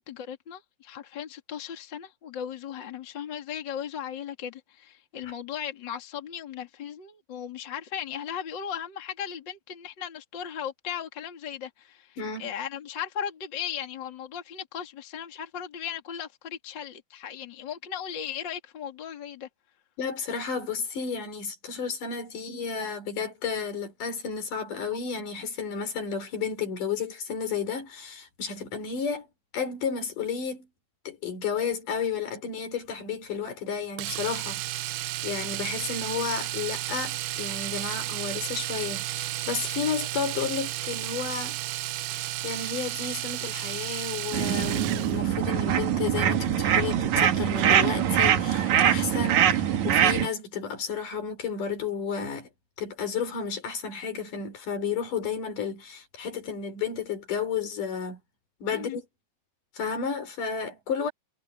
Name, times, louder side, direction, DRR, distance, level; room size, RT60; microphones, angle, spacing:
voice 1, 0.0-19.5 58.7-59.0, left 9 dB, 35° left, 2.7 m, -37 dB
voice 2, 12.2-12.5 20.0-29.3 29.5-30.7 31.1-41.6 42.1-52.5 52.8-58.2 58.6-59.0 59.8-61.1, left 6 dB, 75° left, 5.7 m, -32 dB
Domestic sounds home sounds, 34.0-45.2 47.4-47.5 47.8-47.9, right 15 dB, 85° right, 2.4 m, -33 dB
sound 1, 44.3-50.3, right 9 dB, 65° right, 2.7 m, -23 dB
omnidirectional pair, 3.8 m